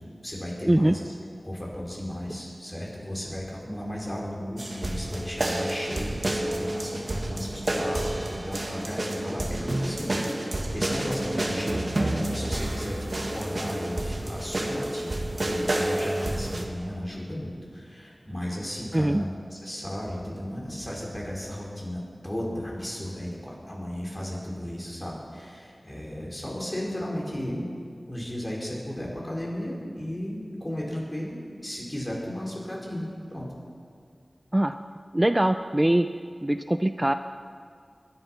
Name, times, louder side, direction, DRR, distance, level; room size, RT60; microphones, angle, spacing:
voice 1, 0.2-1.0 1.4-15.1 15.4-27.7 28.1-33.5, equal, 25° left, -3 dB, 4.9 m, -34 dB
sound 1, 4.6-16.7, right 1 dB, 50° right, 1.8 m, -29 dB
voice 2, 18.9-19.3 34.5-34.8 35.1-36.1 36.4-37.1, right 1 dB, 20° right, 9 dB, 0.5 m, -22 dB
21.0 x 11.5 x 5.9 m, 2.2 s
wide cardioid pair, 65°, 0 cm